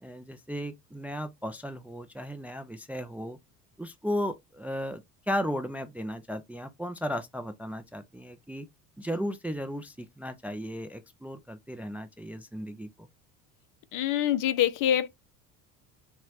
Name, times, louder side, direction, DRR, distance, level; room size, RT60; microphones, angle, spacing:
voice 1, 0.0-3.4 3.8-8.7 9.0-13.1, equal, 5° right, 0.4 m, -35 dB
voice 2, 13.9-15.1, left 11 dB, 45° left, 0.6 m, -25 dB
4.5 x 2.9 x 2.8 m
hypercardioid pair, 70°, 43 cm